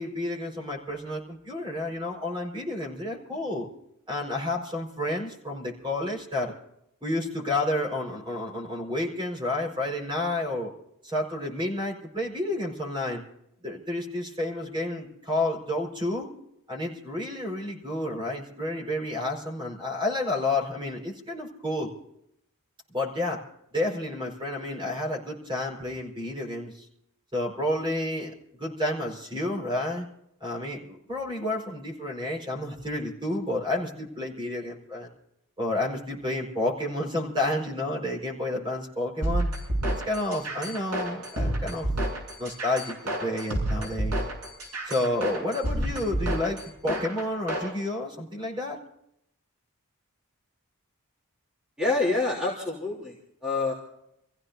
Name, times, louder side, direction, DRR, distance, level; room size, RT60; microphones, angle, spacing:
voice 1, 0.0-3.7 4.1-6.5 7.0-10.7 11.0-13.2 13.6-16.3 16.7-21.9 22.9-23.4 23.7-26.9 27.3-28.3 28.6-30.1 30.4-35.1 35.6-39.5 40.0-41.9 42.4-42.9 43.2-44.2 44.9-48.8, left 1 dB, 20° right, 1 dB, 4.8 m, -30 dB
sound 1, 39.2-47.7, right 1 dB, 80° right, 7.9 m, -29 dB
voice 2, 51.8-53.2 53.4-53.7, left 3 dB, 5° right, -4 dB, 3.2 m, -26 dB
28.0 x 15.5 x 2.7 m, 0.77 s
head